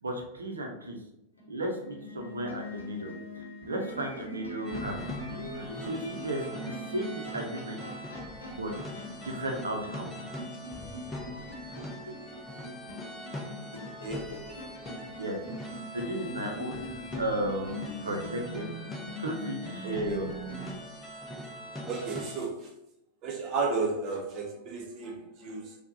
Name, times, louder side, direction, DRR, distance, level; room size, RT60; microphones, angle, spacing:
voice 1, 0.0-1.0 1.5-5.0 5.5-7.8 8.5-8.7 9.2-10.1 15.2-15.4 15.9-20.2, right 1 dB, 75° right, 2 dB, 0.6 m, -35 dB
sound 1, 1.4-20.7, equal, 75° left, 0.7 m, -42 dB
sound 2, 4.6-22.4, equal, 10° left, 0.7 m, -42 dB
voice 2, 13.8-14.3 19.8-20.2 21.8-22.7 23.2-25.8, right 4 dB, 35° right, 0 dB, 0.9 m, -33 dB
4.4 x 2.3 x 2.6 m, 0.85 s
figure-of-eight pair, 90°, 0 cm